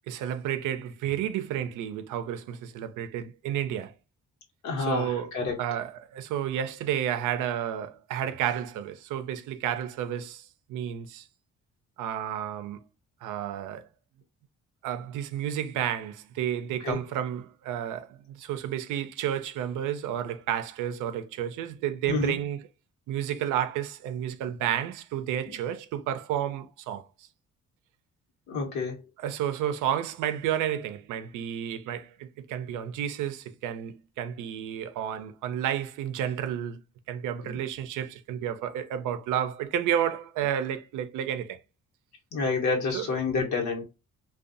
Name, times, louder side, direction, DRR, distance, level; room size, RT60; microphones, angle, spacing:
voice 1, 0.1-3.9 4.8-5.3 5.6-11.3 12.0-12.8 13.2-13.9 14.8-22.6 23.1-27.0 29.2-36.8 37.1-41.6 42.9-43.1, right 10 dB, 85° right, 0.5 m, -31 dB
voice 2, 4.6-5.6 16.8-17.0 22.0-22.4 28.5-29.1 37.4-37.6 42.3-43.8, left 4 dB, 70° left, 1.0 m, -29 dB
2.6 x 2.3 x 2.5 m
cardioid pair, 90°, 30 cm